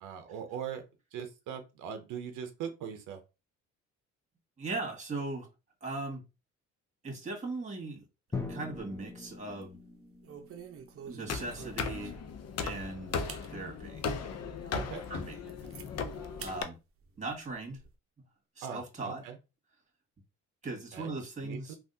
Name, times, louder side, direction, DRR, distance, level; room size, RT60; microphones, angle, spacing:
voice 1, 0.0-0.8 1.1-3.2 14.7-15.1 15.6-15.7 18.6-19.4 20.9-21.7, right 8 dB, 85° right, 6 dB, 0.6 m, -41 dB
voice 2, 4.6-5.5 5.8-6.2 7.0-8.0 8.3-9.8 11.1-12.2 12.6-14.0 15.1-15.4 16.4-16.8 17.2-17.8 18.6-19.2 20.6-21.8, right 3 dB, 25° right, 1 dB, 1.7 m, -39 dB
Drum, 8.3-12.1, left 4 dB, 10° left, 0.7 m, -43 dB
sound 1, 8.4-9.1 9.5-9.7 10.2-12.3 12.8-12.9 13.2-13.5 14.0-14.1 14.6-14.7 15.0-15.9 16.4-16.6 17.0-17.9, right 7 dB, 50° right, 0.6 m, -48 dB
sound 2, 11.3-16.6, left 5 dB, 55° left, 0.6 m, -37 dB
3.5 x 2.4 x 2.6 m, 0.27 s
cardioid pair, 90°, 30 cm